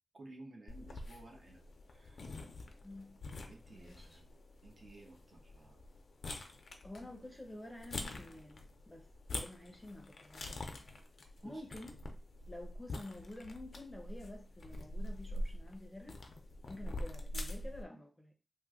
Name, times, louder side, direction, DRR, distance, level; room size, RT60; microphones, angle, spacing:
voice 1, 0.1-1.6 1.9-2.3 3.5-4.3 4.6-5.8 11.4-11.7, right 2 dB, 55° right, 0.9 m, -55 dB
sound 1, 0.7-17.8, left 1 dB, 75° left, 0.5 m, -45 dB
voice 2, 2.8-3.2 3.7-4.2 6.8-9.1 9.3-10.6 11.4-12.0 12.5-16.2 16.6-18.3, left 1 dB, 10° left, 0.6 m, -49 dB
3.1 x 2.1 x 3.6 m
wide cardioid pair, 135°, 0 cm